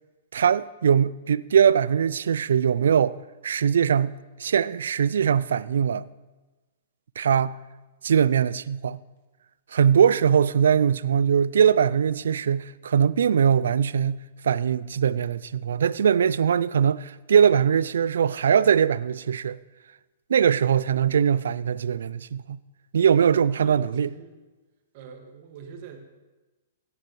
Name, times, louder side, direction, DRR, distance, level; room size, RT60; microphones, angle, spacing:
voice 1, 0.3-3.2 3.4-4.1 4.4-6.0 7.2-7.5 8.0-9.0 9.7-14.2 14.4-19.6 20.3-22.6 22.9-24.1, right 8 dB, 75° right, 0.3 m, -21 dB
voice 2, 23.5-24.4 24.9-26.0, right 7 dB, 50° right, 1.8 m, -44 dB
16.5 x 9.8 x 3.1 m
hypercardioid pair, 120°, 0 cm